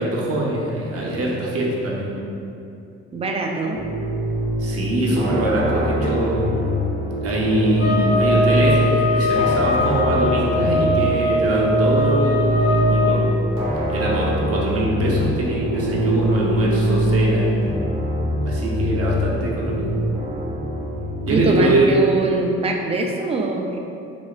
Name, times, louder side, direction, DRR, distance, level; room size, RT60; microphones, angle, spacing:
voice 1, 0.0-2.1 4.6-6.5 7.2-13.3 13.9-17.5 18.4-19.9 21.3-21.9, right 1 dB, 50° right, -3 dB, 0.7 m, -23 dB
voice 2, 3.1-3.8 21.3-23.8, right 2 dB, 20° right, 2 dB, 0.3 m, -23 dB
sound 1, 3.7-21.8, equal, 85° right, 1.0 m, -23 dB
sound 2, 7.8-13.2, left 2 dB, 50° left, 0.8 m, -22 dB
4.9 x 2.1 x 2.5 m, 2.6 s
cardioid pair, 90°, 30 cm